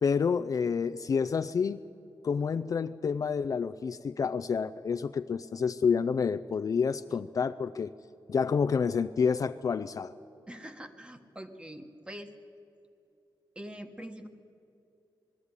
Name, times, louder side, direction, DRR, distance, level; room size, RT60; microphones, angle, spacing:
voice 1, 0.0-1.8 2.2-7.9 8.3-10.1, left 6 dB, 45° left, 10 dB, 0.4 m, -29 dB
voice 2, 10.5-12.3 13.5-14.3, right 1 dB, 10° right, 7 dB, 1.2 m, -44 dB
20.0 x 13.5 x 9.7 m, 2.7 s
wide cardioid pair, 150°, 8 cm